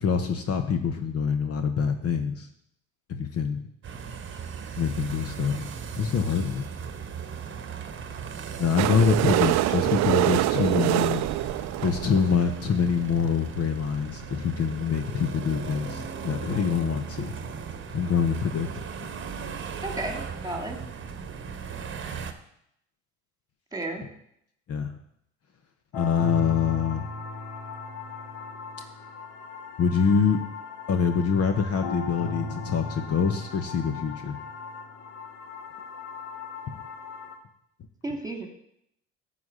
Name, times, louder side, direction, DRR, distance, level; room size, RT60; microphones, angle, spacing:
voice 1, 0.0-2.5 3.1-3.6 4.8-5.7 6.0-6.7 8.6-11.2 11.8-17.3 17.9-18.8 24.7-24.9 25.9-27.1 29.8-30.4 30.9-34.4, left 6 dB, 45° left, 7 dB, 1.1 m, -25 dB
sound 1, 3.8-22.3, right 6 dB, 35° right, 1.1 m, -37 dB
sound 2, 8.8-12.6 13.3-13.4 13.6-13.7 13.9-14.0 14.3-14.4, right 16 dB, 55° right, 0.5 m, -25 dB
voice 2, 19.8-20.8 23.7-24.0 38.0-38.5, right 2 dB, 10° right, 3 dB, 2.0 m, -33 dB
sound 3, 25.9-37.3, left 3 dB, 90° left, 1.1 m, -37 dB
10.5 x 4.2 x 7.5 m, 0.74 s
hypercardioid pair, 70°, 34 cm